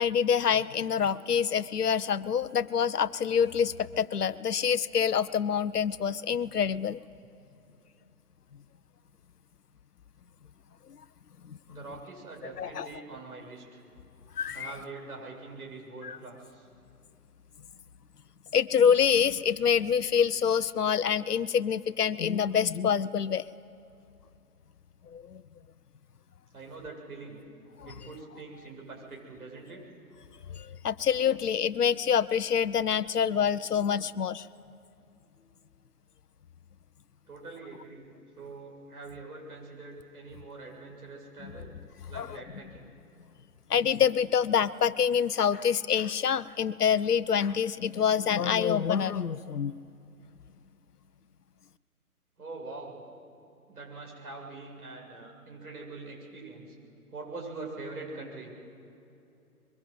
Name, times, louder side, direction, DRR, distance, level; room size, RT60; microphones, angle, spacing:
voice 1, 0.0-7.0 11.5-11.6 12.4-12.9 14.4-14.7 16.0-16.2 18.5-23.4 25.1-25.4 27.8-27.9 30.6-34.5 42.1-42.4 43.7-49.7, left 7 dB, 80° left, 14 dB, 0.9 m, -26 dB
voice 2, 11.7-13.8 14.5-16.7 26.5-27.4 27.8-29.8 37.3-38.1 38.4-41.7 42.1-42.9 52.4-53.0 53.7-56.7 57.1-58.5, right 3 dB, 70° right, -1 dB, 7.8 m, -43 dB
23.0 x 21.5 x 7.9 m, 2.7 s
hypercardioid pair, 150°, 46 cm